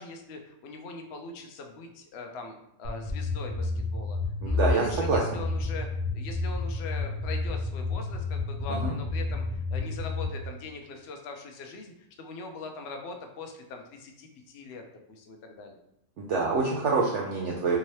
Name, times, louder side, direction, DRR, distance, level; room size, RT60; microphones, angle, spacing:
voice 1, 0.0-5.9 6.1-11.9 12.2-14.8 15.1-15.8, left 3 dB, 90° left, 4 dB, 0.5 m, -41 dB
sound 1, 2.8-10.2, left 3 dB, 50° right, 1.1 m, -30 dB
voice 2, 4.4-5.2 8.8-8.9 16.2-17.8, right 4 dB, 80° right, -2 dB, 0.6 m, -26 dB
3.6 x 2.8 x 3.1 m, 0.76 s
omnidirectional pair, 1.8 m